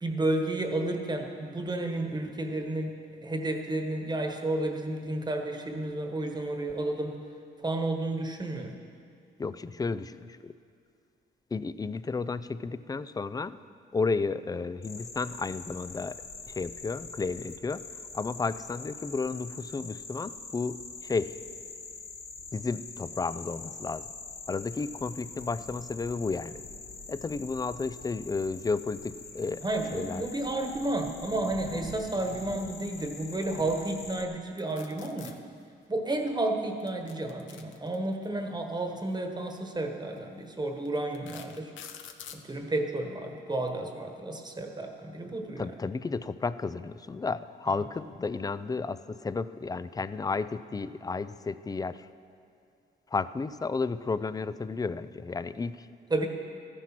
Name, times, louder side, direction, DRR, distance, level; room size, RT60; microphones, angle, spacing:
voice 1, 0.0-7.2 7.6-8.8 29.6-35.4 35.9-41.7 42.3-45.7 47.7-47.8 56.1-56.3, right 2 dB, 20° right, 4 dB, 1.3 m, -31 dB
voice 2, 9.4-10.5 11.5-13.6 13.9-16.2 16.5-21.4 22.5-24.1 24.5-26.6 27.1-29.6 29.9-30.2 45.6-52.1 53.1-55.9, left 4 dB, 20° left, 14 dB, 0.4 m, -32 dB
sound 1, 14.8-34.2, left 4 dB, 50° left, 1.5 m, -44 dB
sound 2, 34.6-35.3 36.8-38.3 39.4-39.6 40.2-40.3 40.9-42.4, left 8 dB, 75° left, 0.9 m, -46 dB
14.0 x 9.9 x 6.0 m, 2.4 s
cardioid pair, 90°, 20 cm